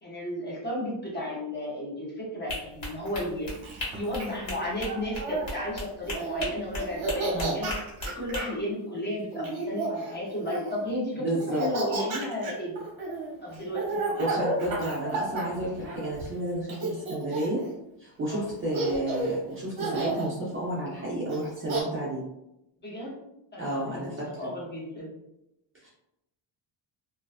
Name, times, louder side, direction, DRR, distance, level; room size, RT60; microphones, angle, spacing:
voice 1, 0.0-3.5 3.9-7.7 8.0-12.8 13.4-14.0 18.3-18.5 22.8-23.2 23.5-25.1, left 1 dB, 20° left, -5 dB, 0.7 m, -34 dB
sound 1, 2.5-8.4, left 1 dB, 85° left, 1.3 m, -37 dB
Laughter, 3.1-5.5 6.0-6.5 6.8-8.5 9.3-10.8 11.4-16.3 16.7-17.7 18.3-18.4 18.7-19.4 19.8-20.3 21.3-21.8, right 2 dB, 50° right, 0.9 m, -32 dB
voice 2, 11.2-11.6 14.2-17.6 18.0-22.3 23.6-24.5 25.8-25.9, right 1 dB, 30° right, -6 dB, 0.4 m, -31 dB
2.4 x 2.2 x 2.4 m, 0.88 s
cardioid pair, 150°, 48 cm